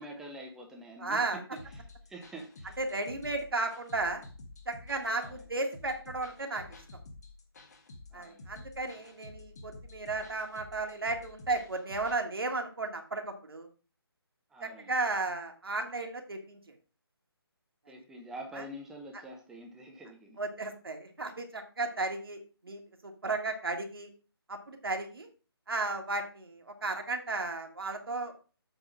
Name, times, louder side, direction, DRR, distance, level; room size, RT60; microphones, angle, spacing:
voice 1, 0.0-1.2 1.7-2.8 5.1-5.4 8.1-8.5 14.5-15.0 17.9-20.4, right 1 dB, 5° right, 0 dB, 0.8 m, -46 dB
voice 2, 1.0-1.4 2.8-4.2 4.7-6.6 8.1-13.7 14.6-16.6 18.5-18.6 20.4-22.4 22.6-24.1 24.5-25.3 25.7-28.3, right 3 dB, 65° right, 4 dB, 1.6 m, -34 dB
sound 1, 1.6-12.2, left 2 dB, 40° left, 1.6 m, -50 dB
8.0 x 3.6 x 6.1 m, 0.36 s
figure-of-eight pair, 150°, 13 cm